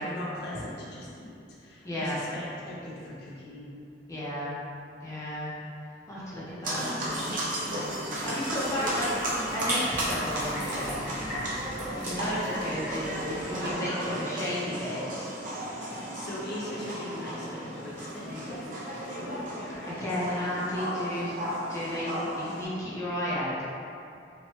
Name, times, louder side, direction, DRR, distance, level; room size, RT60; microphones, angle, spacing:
voice 1, 0.0-3.8 7.7-8.1 8.8-8.9 15.9-18.7 19.1-20.7, left 1 dB, 60° left, -5 dB, 0.5 m, -40 dB
voice 2, 1.8-2.2 4.1-4.5 5.0-5.5 6.1-7.1 8.2-9.1 9.5-11.0 12.0-15.3 20.0-21.3 21.7-22.1 22.4-23.7, left 1 dB, 15° left, -9 dB, 0.6 m, -33 dB
sound 1, 6.6-22.6, right 1 dB, 45° right, 0.6 m, -34 dB
sound 2, 7.2-13.8, equal, 15° right, 0.9 m, -37 dB
2.9 x 2.1 x 2.8 m, 2.5 s
head